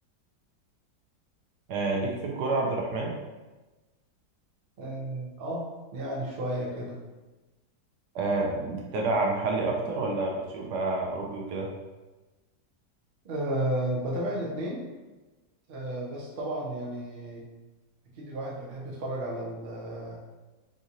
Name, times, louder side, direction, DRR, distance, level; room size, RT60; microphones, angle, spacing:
voice 1, 1.7-3.1 8.1-11.7, right 2 dB, 70° right, -1 dB, 1.1 m, -28 dB
voice 2, 4.8-7.0 13.2-14.8 15.7-17.5 18.1-20.2, right 1 dB, 90° right, -4 dB, 0.5 m, -33 dB
3.7 x 2.6 x 2.8 m, 1.2 s
omnidirectional pair, 2.0 m